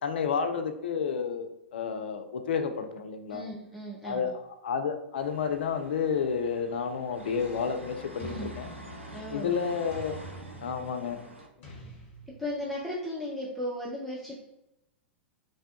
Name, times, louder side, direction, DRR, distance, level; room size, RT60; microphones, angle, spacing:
voice 1, 0.0-3.4 4.0-8.7 9.3-10.2 10.6-11.2, left 6 dB, 60° left, 7 dB, 0.4 m, -31 dB
voice 2, 3.3-4.3 8.2-8.5 9.1-9.5 12.4-14.4, left 1 dB, ahead, -5 dB, 0.5 m, -36 dB
sound 1, 5.2-11.5, right 2 dB, 85° right, 0.5 m, -46 dB
sound 2, 7.4-7.8 8.2-9.5 9.9-11.0 11.6-12.7, equal, 40° left, 1.2 m, -47 dB
3.2 x 2.1 x 2.7 m, 0.88 s
figure-of-eight pair, 100°, 6 cm